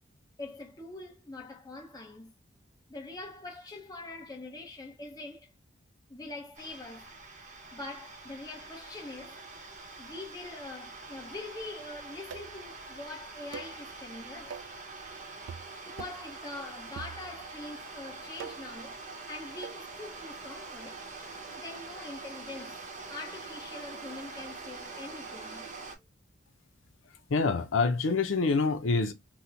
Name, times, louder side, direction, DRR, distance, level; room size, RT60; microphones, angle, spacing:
voice 1, 0.4-2.3 2.9-5.5 6.1-7.1 7.7-9.4 10.0-14.6 15.9-19.0 19.3-21.0 21.6-22.8 23.1-25.7, left 2 dB, 20° left, 0.8 m, -43 dB
sound 1, 6.5-25.9, right 3 dB, 40° right, 0.8 m, -45 dB
sound 2, 12.3-12.7 13.5-13.8 14.5-14.8 15.5-15.7 16.0-16.3 17.0-17.5 18.4-18.8 19.6-19.9, right 6 dB, 65° right, 0.3 m, -44 dB
voice 2, 27.3-29.1, left 4 dB, 85° left, 0.5 m, -26 dB
3.0 x 2.1 x 3.7 m
head